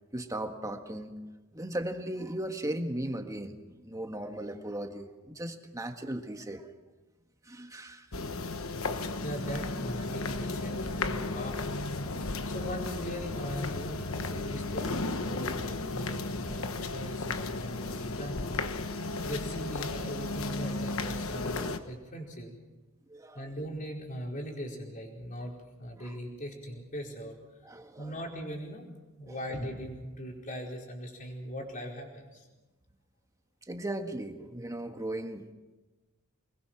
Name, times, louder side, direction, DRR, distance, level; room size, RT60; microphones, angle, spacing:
voice 1, 0.1-1.2 1.5-6.7 7.5-8.1 23.1-23.4 26.0-26.2 27.6-28.1 29.3-29.4 33.7-35.5, right 1 dB, 15° right, 5 dB, 1.6 m, -37 dB
sound 1, 8.1-21.8, left 3 dB, 70° left, 1.3 m, -34 dB
voice 2, 9.2-11.9 12.5-18.6 19.2-22.6 23.3-27.4 28.0-28.9 29.1-32.4, equal, 40° left, 0 dB, 4.6 m, -40 dB
24.0 x 21.0 x 6.0 m, 1.1 s
head